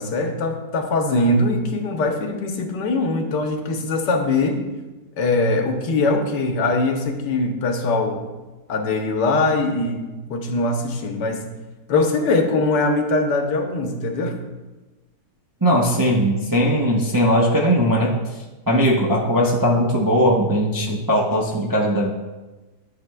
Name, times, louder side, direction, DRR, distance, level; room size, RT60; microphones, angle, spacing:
voice 1, 0.0-4.6 5.2-8.3 8.7-11.4 11.9-14.3, left 2 dB, 90° left, 4 dB, 1.5 m, -22 dB
voice 2, 15.6-18.1 18.7-22.1, equal, 30° right, -3 dB, 0.4 m, -19 dB
12.5 x 6.7 x 2.2 m, 1.2 s
omnidirectional pair, 1.8 m